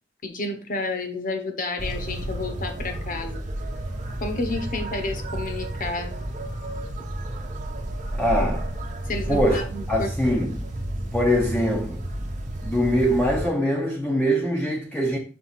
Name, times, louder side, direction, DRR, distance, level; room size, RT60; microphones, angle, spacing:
voice 1, 0.2-3.4 4.2-6.1 9.1-10.4, left 2 dB, 45° left, 1.2 m, -31 dB
sound 1, 1.8-13.5, right 1 dB, 40° right, 1.0 m, -31 dB
voice 2, 8.2-8.7 9.3-9.6 9.9-10.7 11.1-12.0 12.6-15.2, equal, 5° left, 0.9 m, -23 dB
5.7 x 3.7 x 5.9 m
head